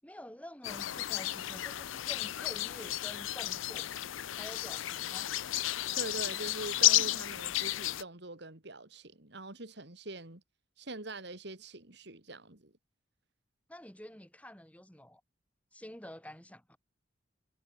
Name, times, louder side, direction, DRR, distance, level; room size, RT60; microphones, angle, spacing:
voice 1, 0.0-3.9 4.3-5.3 13.7-15.2 15.7-16.8, equal, 5° left, 6.2 m, -49 dB
sound 1, 0.6-8.0, left 15 dB, 80° left, 0.5 m, -32 dB
voice 2, 6.0-10.4 10.8-12.7, right 2 dB, 60° right, 2.9 m, -43 dB
head